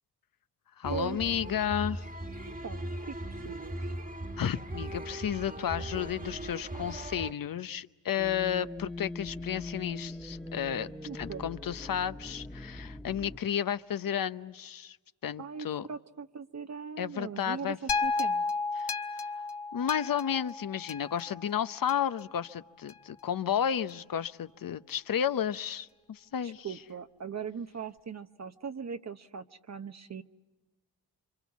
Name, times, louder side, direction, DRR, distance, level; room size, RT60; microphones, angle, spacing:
voice 1, 0.8-2.0 4.4-15.0 15.2-15.9 17.0-17.8 18.8-18.9 19.7-26.7, left 9 dB, 55° left, 14 dB, 0.9 m, -32 dB
sound 1, 0.8-7.3, right 1 dB, 20° right, 1.6 m, -39 dB
voice 2, 2.5-3.1 3.4-3.8 11.0-11.5 15.4-18.5 26.4-30.2, right 6 dB, 40° right, 8 dB, 0.9 m, -40 dB
sound 2, 8.2-13.4, left 2 dB, ahead, 1.2 m, -42 dB
sound 3, 17.9-22.2 22.9-23.0, left 4 dB, 75° left, 1.4 m, -33 dB
27.5 x 25.0 x 7.2 m, 1.2 s
cardioid pair, 55°, 41 cm